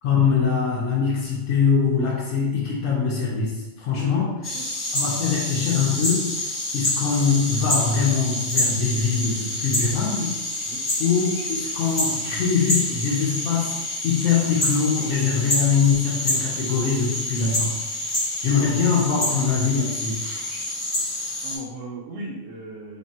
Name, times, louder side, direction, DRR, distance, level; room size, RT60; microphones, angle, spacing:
voice 1, 0.0-4.3 4.9-6.3 6.7-10.4 11.0-13.8 14.0-17.7 18.4-20.4, left 6 dB, 70° left, -5 dB, 0.9 m, -23 dB
voice 2, 3.9-4.3 4.5-4.7 10.6-10.8 21.4-23.0, right 1 dB, 70° right, -1 dB, 0.8 m, -36 dB
sound 1, 4.4-21.6, left 1 dB, 25° left, 0.8 m, -27 dB
3.5 x 2.1 x 2.7 m, 1.1 s
omnidirectional pair, 1.6 m